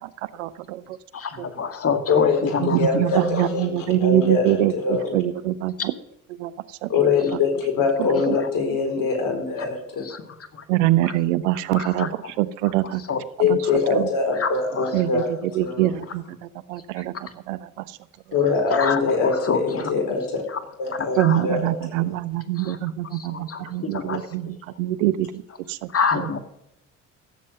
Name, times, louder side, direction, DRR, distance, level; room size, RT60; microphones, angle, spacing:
voice 1, 0.3-1.0 1.4-1.5 2.6-5.9 6.4-6.9 8.0-8.4 10.7-12.1 12.4-13.0 13.4-13.6 13.9-14.1 14.9-17.1 17.5-18.0 21.2-25.4 25.7-25.9 26.2-26.3, right 14 dB, 85° right, 16 dB, 0.7 m, -24 dB
voice 2, 1.1-2.9 3.1-3.5 8.3-8.5 9.6-9.7 10.0-10.6 11.0-11.1 11.8-12.3 12.8-13.2 14.4-14.9 17.0-17.3 18.7-19.9 20.5-20.6 20.9-21.4 22.6-22.8 23.1-24.4 24.7-24.8 25.9-26.4, left 5 dB, 40° left, 8 dB, 2.0 m, -28 dB
voice 3, 2.1-3.7 4.0-5.2 6.9-10.0 13.4-15.9 18.3-20.2 20.8-21.7 22.0-22.1, left 5 dB, 65° left, 4 dB, 4.7 m, -23 dB
16.5 x 7.6 x 6.4 m, 0.83 s
hypercardioid pair, 60°, 36 cm